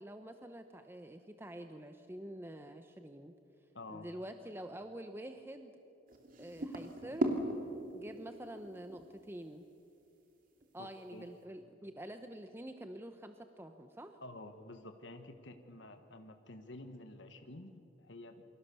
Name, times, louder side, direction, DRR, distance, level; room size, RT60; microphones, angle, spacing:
voice 1, 0.0-3.3 3.9-5.8 6.4-7.3 7.9-9.7 10.7-14.2, right 1 dB, 10° right, 7 dB, 0.9 m, -47 dB
voice 2, 3.7-4.1 10.8-11.3 14.2-18.4, left 2 dB, 70° left, 6 dB, 1.5 m, -50 dB
sound 1, 6.1-9.3 10.6-10.7, right 1 dB, 45° right, 2.9 m, -38 dB
28.5 x 24.5 x 7.0 m, 2.7 s
head